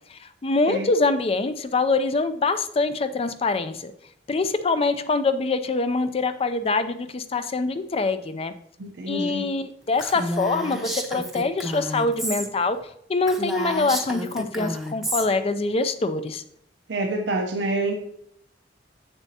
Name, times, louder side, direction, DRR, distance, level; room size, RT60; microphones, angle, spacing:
voice 1, 0.1-3.9 4.3-8.5 9.1-12.8 13.1-16.4, left 3 dB, 35° left, 11 dB, 0.4 m, -24 dB
voice 2, 8.8-9.5 16.9-17.9, right 2 dB, 80° right, 1 dB, 0.7 m, -27 dB
Female speech woman speaking, 10.0-12.5 12.8-12.9 13.2-15.3, equal, ahead, 0.7 m, -31 dB
7.2 x 6.8 x 2.7 m, 0.73 s
head